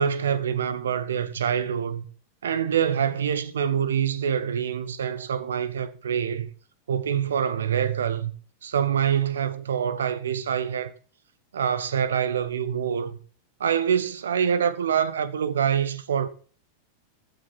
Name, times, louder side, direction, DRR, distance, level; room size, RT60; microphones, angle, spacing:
voice 1, 0.0-2.0 2.4-6.5 6.9-8.3 8.6-10.9 11.5-13.2 13.6-16.3, right 8 dB, 65° right, 1.2 m, -25 dB
15.5 x 10.5 x 4.2 m
figure-of-eight pair, 90°, 0 cm